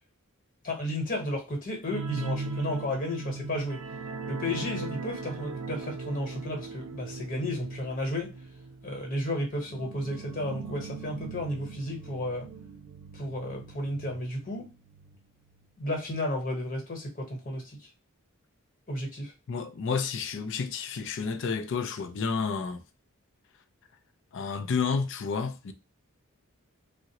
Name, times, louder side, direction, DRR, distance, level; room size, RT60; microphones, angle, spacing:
voice 1, 0.6-3.8 4.3-8.3 8.8-12.5 13.1-14.7 15.8-17.9 18.9-19.3, left 1 dB, 40° left, 1.1 m, -33 dB
sound 1, 1.9-15.2 15.5-15.7 16.0-16.1, right 4 dB, 85° right, 0.5 m, -39 dB
voice 2, 19.5-22.8 24.3-25.7, left 5 dB, 55° left, 0.4 m, -30 dB
3.6 x 2.1 x 2.8 m
head